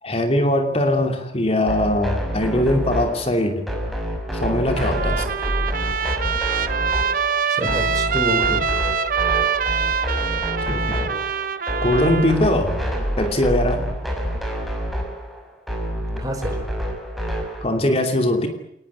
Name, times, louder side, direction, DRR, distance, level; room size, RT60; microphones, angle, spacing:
voice 1, 0.0-3.7 4.4-5.2 7.6-7.8 8.5-8.6 10.6-11.1 11.8-12.8 13.2-13.8 17.6-18.5, left 1 dB, 35° left, 5 dB, 2.8 m, -21 dB
sound 1, 1.7-17.6, equal, ahead, 5.9 m, -27 dB
Trumpet, 4.8-12.4, right 6 dB, 50° right, 1.3 m, -24 dB
voice 2, 7.1-8.9 16.2-16.6, equal, 20° right, 4 dB, 5.6 m, -29 dB
28.5 x 19.5 x 9.7 m, 0.76 s
head